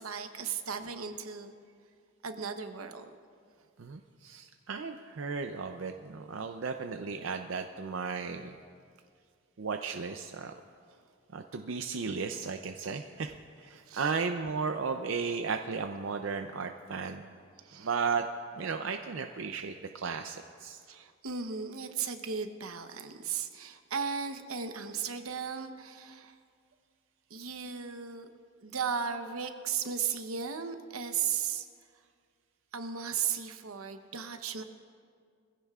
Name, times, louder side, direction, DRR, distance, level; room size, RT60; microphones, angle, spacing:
voice 1, 0.0-1.5 2.2-3.0 10.9-11.0 13.9-14.1 17.6-17.9 20.9-26.4 27.3-28.3 28.6-31.7 32.7-34.6, right 7 dB, 90° right, 7 dB, 0.9 m, -36 dB
voice 2, 3.8-8.6 9.6-10.5 11.3-17.2 17.8-18.3 18.6-20.8, right 5 dB, 65° right, 6 dB, 0.5 m, -35 dB
23.0 x 16.0 x 2.4 m, 2.1 s
head